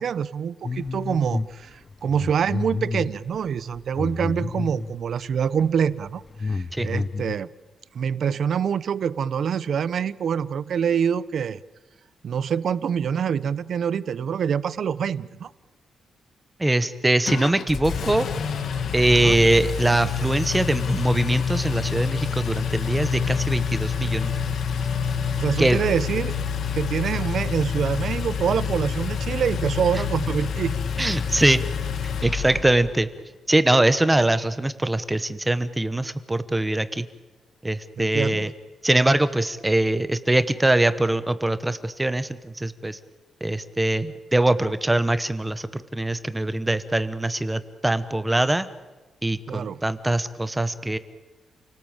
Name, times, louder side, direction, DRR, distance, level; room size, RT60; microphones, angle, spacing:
voice 1, 0.0-7.5 7.9-11.6 12.2-15.5 19.1-19.4 25.3-26.3 26.7-30.8 38.0-38.5 49.5-49.8, right 7 dB, 55° right, 18 dB, 0.8 m, -25 dB
sound 1, 0.6-1.5 1.9-4.9 5.6-5.8 6.1-7.4, left 4 dB, 30° left, 0.8 m, -30 dB
voice 2, 16.6-18.3 18.9-24.3 25.6-25.8 31.0-31.6 32.0-33.1 33.5-37.1 37.6-38.5 38.8-43.0 43.4-48.7 49.2-51.0, right 1 dB, 10° right, 13 dB, 1.0 m, -22 dB
Engine, 17.3-33.0, left 6 dB, 60° left, 1.7 m, -27 dB
29.0 x 19.0 x 8.8 m, 1.2 s
wide cardioid pair, 155°, 0 cm